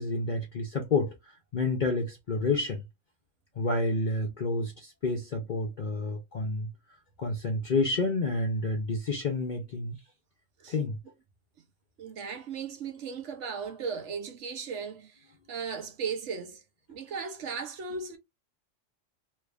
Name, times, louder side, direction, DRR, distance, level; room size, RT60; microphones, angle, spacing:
voice 1, 0.0-2.8 3.6-6.7 7.2-10.0 10.7-11.0, left 3 dB, 50° left, 0.7 m, -29 dB
voice 2, 12.0-16.6 16.9-18.2, right 5 dB, 75° right, 1.1 m, -36 dB
3.1 x 2.4 x 3.3 m
omnidirectional pair, 1.3 m